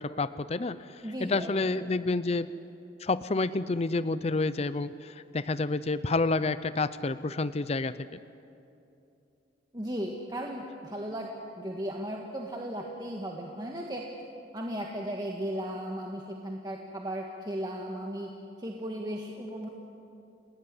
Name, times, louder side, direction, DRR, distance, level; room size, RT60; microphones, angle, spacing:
voice 1, 0.0-2.5 3.0-8.0, left 3 dB, 35° left, 14 dB, 0.5 m, -29 dB
voice 2, 1.0-1.6 9.7-14.1 14.5-18.3 18.6-19.7, equal, 20° right, 0 dB, 1.6 m, -36 dB
28.5 x 18.0 x 9.8 m, 2.7 s
head